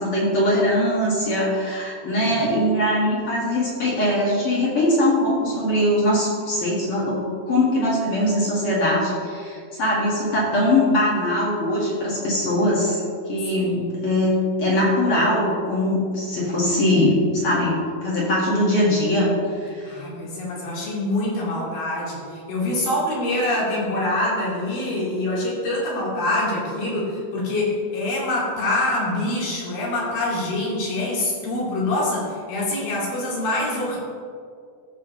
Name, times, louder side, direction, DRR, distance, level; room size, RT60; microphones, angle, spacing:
voice 1, 0.0-13.0 13.3-19.9, left 1 dB, 45° left, -5 dB, 2.3 m, -21 dB
voice 2, 13.6-14.0 19.9-34.0, left 1 dB, 75° left, -5 dB, 4.2 m, -25 dB
14.0 x 7.3 x 3.1 m, 2.2 s
omnidirectional pair, 4.1 m